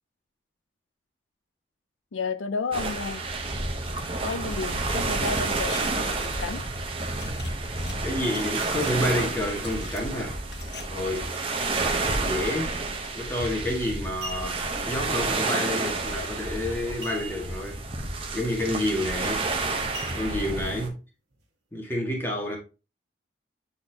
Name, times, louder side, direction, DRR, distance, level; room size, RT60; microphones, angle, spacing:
voice 1, 2.1-3.2 4.2-6.6, left 4 dB, 85° left, 0.5 m, -32 dB
sound 1, 2.7-20.9, right 3 dB, 30° right, 0.9 m, -30 dB
sound 2, 5.2-6.4 7.2-7.9 8.2-9.2 9.6-10.8 11.1-11.2, left 7 dB, 55° left, 0.9 m, -45 dB
voice 2, 8.0-10.4 10.9-11.3 12.2-12.7 13.1-17.8 18.3-19.5 20.1-21.0 21.7-22.6, left 1 dB, 10° left, 1.8 m, -29 dB
sound 3, 13.5-13.6 14.0-14.8 17.0-17.7 18.0-18.1 18.6-18.8 19.9-20.7 21.3-21.4, right 2 dB, 60° right, 1.7 m, -40 dB
8.6 x 4.1 x 2.9 m
head